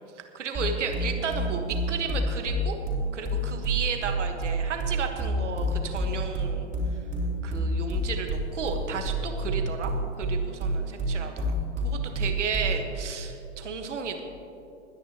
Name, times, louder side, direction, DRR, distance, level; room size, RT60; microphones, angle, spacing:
voice 1, 0.3-2.8 3.1-6.7 7.4-9.9 10.2-11.5 11.8-14.2, right 5 dB, 80° right, 4 dB, 1.5 m, -33 dB
sound 1, 0.5-12.9, right 1 dB, 20° right, 3.3 m, -28 dB
22.0 x 9.9 x 3.0 m, 2.9 s
hypercardioid pair, 100°, 35 cm